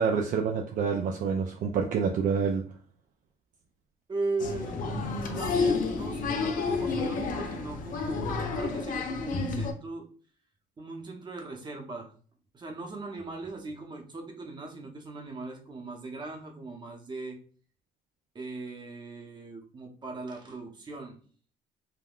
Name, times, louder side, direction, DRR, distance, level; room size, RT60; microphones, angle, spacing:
voice 1, 0.0-2.6, right 6 dB, 50° right, 3 dB, 0.4 m, -27 dB
voice 2, 4.1-10.1 10.8-12.1 12.5-17.4 18.3-21.2, right 3 dB, 25° right, 1 dB, 0.8 m, -38 dB
Applause, 4.4-9.7, left 4 dB, 55° left, 0.5 m, -30 dB
3.6 x 2.2 x 2.3 m, 0.43 s
cardioid pair, 110°, 17 cm